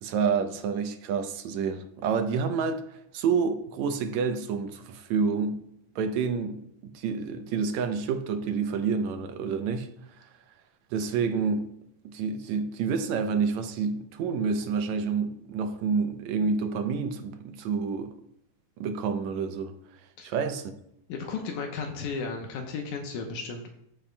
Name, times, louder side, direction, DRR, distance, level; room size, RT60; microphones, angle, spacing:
voice 1, 0.0-5.6 6.0-9.9 10.2-10.3 10.9-11.7 12.1-18.2 18.8-19.7 20.2-20.7, right 5 dB, 75° right, 2.0 m, -28 dB
voice 2, 21.1-23.7, left 4 dB, 80° left, 2.3 m, -34 dB
14.0 x 7.7 x 2.3 m
omnidirectional pair, 3.4 m